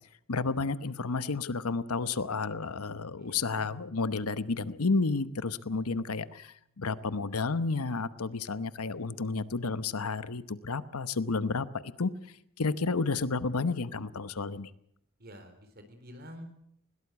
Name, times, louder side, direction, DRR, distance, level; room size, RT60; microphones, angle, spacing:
voice 1, 0.3-12.1 12.6-14.7, left 4 dB, 90° left, 15 dB, 1.0 m, -31 dB
voice 2, 3.2-3.6 15.2-16.5, equal, 45° right, 8 dB, 3.8 m, -48 dB
sound 1, 3.6-7.1, right 3 dB, 30° left, 7.2 m, -61 dB
21.0 x 17.5 x 8.2 m, 0.70 s
head